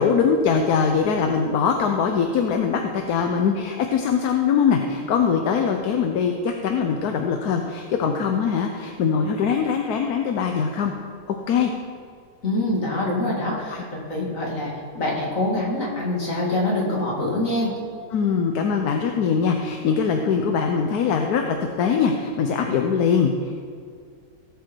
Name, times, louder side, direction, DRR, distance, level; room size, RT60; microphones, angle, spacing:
voice 1, 0.0-10.9 11.5-11.7 18.1-23.5, left 6 dB, 80° left, 4 dB, 1.3 m, -22 dB
voice 2, 12.4-13.8 14.1-17.7, left 1 dB, 60° left, -4 dB, 3.0 m, -25 dB
18.0 x 7.2 x 4.6 m, 2.2 s
omnidirectional pair, 1.6 m